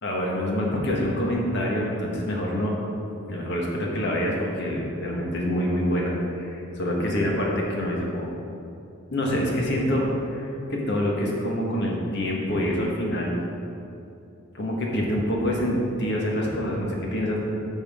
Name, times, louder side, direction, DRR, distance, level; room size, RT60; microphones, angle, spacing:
voice 1, 0.0-2.7 3.3-8.3 9.1-13.4 14.5-17.4, equal, 60° left, -2 dB, 1.6 m, -26 dB
11.0 x 6.4 x 3.7 m, 2.7 s
head